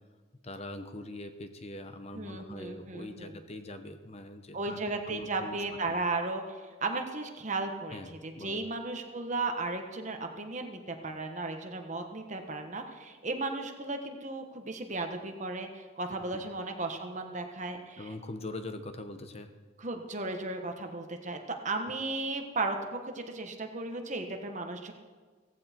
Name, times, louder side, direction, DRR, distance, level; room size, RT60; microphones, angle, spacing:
voice 1, 0.4-4.8 5.1-5.6 5.9-6.0 7.9-8.1 8.3-8.6 16.3-16.5 18.0-19.5, left 2 dB, 30° left, 8 dB, 0.9 m, -42 dB
voice 2, 2.1-3.4 4.5-18.1 19.8-24.9, right 3 dB, 40° right, 5 dB, 1.4 m, -35 dB
16.5 x 15.5 x 4.5 m, 1.4 s
head